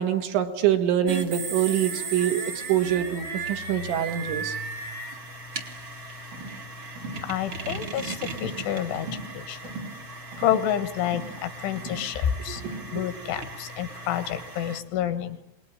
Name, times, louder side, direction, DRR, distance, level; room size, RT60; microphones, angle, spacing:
voice 1, 0.0-2.4 2.7-4.6 12.9-13.1, right 10 dB, 75° right, 6 dB, 3.9 m, -25 dB
sound 1, 1.1-14.8, right 3 dB, 45° right, 1.7 m, -37 dB
sound 2, 6.3-6.6 7.0-7.3 7.6-7.9 8.3-8.7 8.9-9.3 9.6-10.0 10.3-10.7 11.0-11.4 11.8-12.1 12.6-12.9, right 2 dB, 90° right, 10.0 m, -39 dB
voice 2, 7.2-9.1 9.4-9.6 10.4-12.6 12.9-15.4, left 10 dB, 75° left, 11 dB, 3.8 m, -28 dB
27.0 x 20.5 x 9.9 m, 0.80 s
omnidirectional pair, 5.6 m